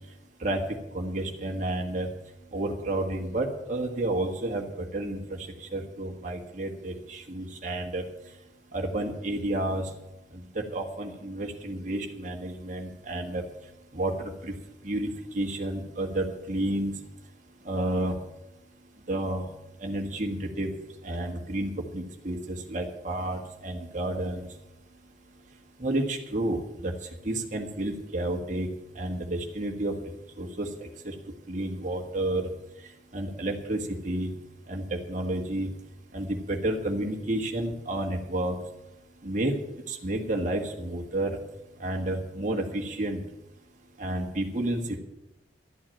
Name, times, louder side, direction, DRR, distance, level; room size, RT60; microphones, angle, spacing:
voice 1, 0.9-2.1 2.5-4.6 4.9-5.2 5.7-8.0 8.7-9.8 10.5-13.4 13.9-14.5 14.8-15.1 15.3-16.9 17.6-18.1 19.1-19.4 19.8-20.7 21.0-24.4 25.8-26.9 27.2-28.7 28.9-29.9 30.4-30.7 31.0-31.1 31.5-32.5 33.1-33.8 34.0-34.3 34.7-35.7 36.1-38.6 39.2-39.5 39.9-41.3 41.8-43.2 44.0-45.0, right 1 dB, 40° right, 1 dB, 1.6 m, -30 dB
12.5 x 8.5 x 8.8 m, 0.93 s
head